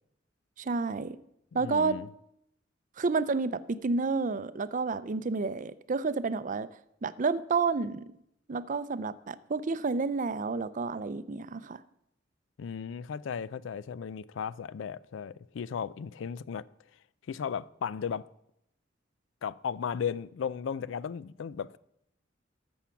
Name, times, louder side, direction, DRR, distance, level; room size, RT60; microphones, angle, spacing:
voice 1, 0.6-1.2 1.5-2.0 3.0-6.7 7.0-8.0 8.5-11.8, right 4 dB, 45° right, 0.5 m, -30 dB
voice 2, 1.5-2.1 12.6-16.7 17.3-18.3 19.4-21.8, left 7 dB, 90° left, 0.4 m, -35 dB
13.0 x 7.2 x 5.8 m
head